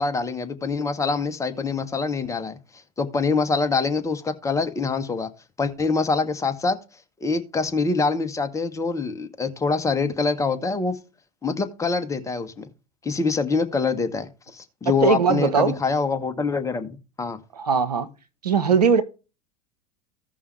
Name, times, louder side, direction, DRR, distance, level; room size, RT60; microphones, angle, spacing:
voice 1, 0.0-2.6 3.0-5.3 5.6-6.8 7.2-11.0 11.4-12.7 13.0-17.4, left 4 dB, 15° left, 1.2 m, -25 dB
voice 2, 15.0-15.8 17.5-18.1 18.4-19.0, right 6 dB, 80° right, 0.9 m, -20 dB
15.5 x 5.4 x 3.3 m
figure-of-eight pair, 80°, 20 cm